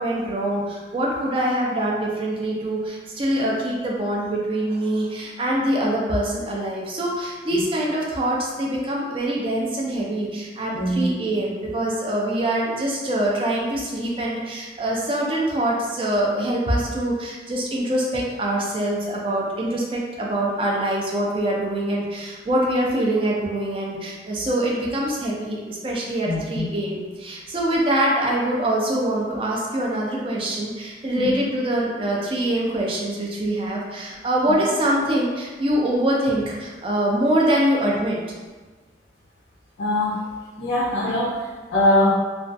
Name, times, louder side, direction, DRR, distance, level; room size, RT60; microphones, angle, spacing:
voice 1, 0.0-38.2, right 1 dB, 30° right, -3 dB, 0.4 m, -24 dB
voice 2, 10.7-11.2 26.3-26.7 31.2-31.3 34.5-34.6 39.8-40.2 40.6-42.1, left 1 dB, 70° left, -5 dB, 0.4 m, -22 dB
2.2 x 2.2 x 2.5 m, 1.3 s
head